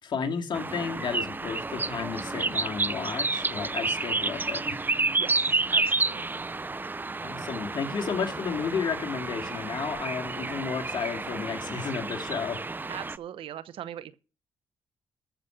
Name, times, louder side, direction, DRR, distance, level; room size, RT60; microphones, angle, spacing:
voice 1, 0.0-4.9 7.2-12.6, left 6 dB, 60° left, 2.5 m, -32 dB
sound 1, 0.5-13.2, right 3 dB, 20° right, 0.5 m, -30 dB
voice 2, 5.2-6.3 12.9-14.1, right 11 dB, 80° right, 0.9 m, -40 dB
14.0 x 6.4 x 5.8 m
cardioid pair, 70°, 9 cm